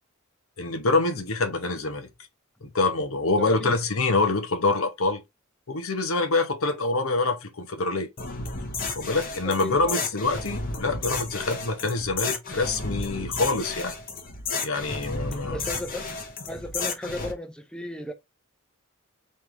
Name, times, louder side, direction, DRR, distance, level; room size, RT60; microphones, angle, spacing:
voice 1, 0.6-2.1 2.6-5.2 5.7-8.1 8.9-13.9 14.6-15.6, left 3 dB, 85° left, 0.9 m, -26 dB
voice 2, 3.4-3.7 9.4-10.1 15.5-16.1 16.5-18.1, left 1 dB, 5° left, 0.6 m, -35 dB
sound 1, 8.2-17.3, left 3 dB, 45° left, 0.9 m, -32 dB
3.8 x 3.3 x 3.2 m
head